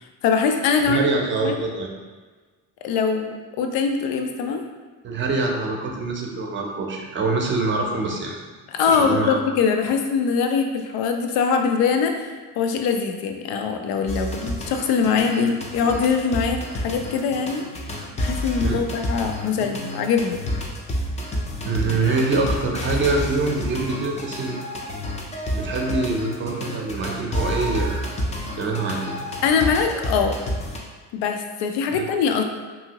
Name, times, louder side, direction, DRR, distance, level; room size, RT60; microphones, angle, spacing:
voice 1, 0.2-1.1 1.4-1.5 2.8-4.6 8.7-12.2 12.6-17.6 18.2-20.4 29.4-30.4 31.1-32.4, left 5 dB, 80° left, 5 dB, 0.5 m, -22 dB
voice 2, 0.9-1.9 5.0-8.4 8.9-9.4 18.6-18.8 21.7-24.6 25.5-28.1 28.6-29.2 31.9-32.1, right 3 dB, 35° right, 1 dB, 0.6 m, -24 dB
very lush and swag loop, 14.1-30.8, left 1 dB, 20° left, 0.4 m, -29 dB
2.7 x 2.7 x 2.8 m, 1.4 s
cardioid pair, 100°, 35 cm